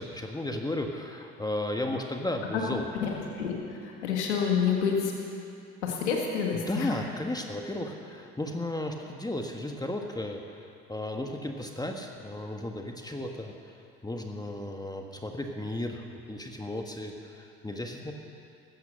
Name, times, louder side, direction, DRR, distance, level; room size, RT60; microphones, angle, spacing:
voice 1, 0.0-2.9 6.5-13.8 14.0-18.1, left 1 dB, 10° left, 2 dB, 1.6 m, -34 dB
voice 2, 2.9-5.1 5.8-6.9, left 6 dB, 90° left, 0 dB, 1.9 m, -28 dB
15.0 x 14.5 x 6.5 m, 2.6 s
hypercardioid pair, 60°, 33 cm